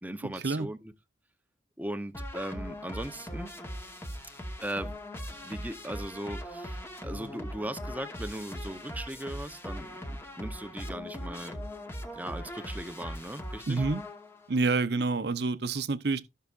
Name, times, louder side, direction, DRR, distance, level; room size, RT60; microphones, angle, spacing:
voice 1, 0.0-0.9 1.8-3.5 4.6-5.0 5.4-11.6 12.1-13.9, right 1 dB, 10° right, 0.7 m, -38 dB
sound 1, 2.1-14.5, equal, 15° left, 1.1 m, -40 dB
voice 2, 13.7-14.0 14.5-16.2, right 3 dB, 65° right, 0.7 m, -28 dB
15.5 x 5.7 x 2.5 m
head